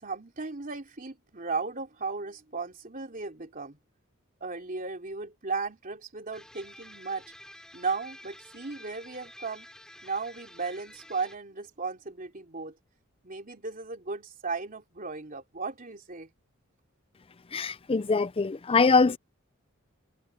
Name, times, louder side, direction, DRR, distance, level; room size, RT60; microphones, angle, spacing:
voice 1, 0.0-3.8 4.4-7.2 7.7-9.7 10.0-12.7 13.2-16.3, right 4 dB, 40° right, 3.2 m, -36 dB
sound 1, 6.3-11.4, left 1 dB, 5° left, 4.7 m, -50 dB
voice 2, 17.5-19.2, left 4 dB, 25° left, 0.5 m, -23 dB
head